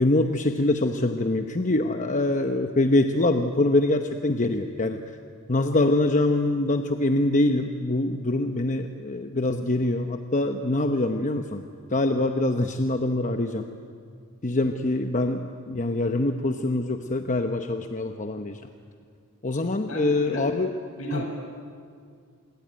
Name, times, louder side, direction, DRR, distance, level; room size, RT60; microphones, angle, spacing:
voice 1, 0.0-5.0 5.5-11.6 11.9-13.7 14.4-18.6 19.4-20.7 21.1-21.3, left 2 dB, 35° left, 6 dB, 0.9 m, -24 dB
voice 2, 19.9-20.4 21.0-21.3, right 1 dB, 70° left, 1 dB, 7.2 m, -33 dB
27.0 x 22.0 x 9.3 m, 2.2 s
head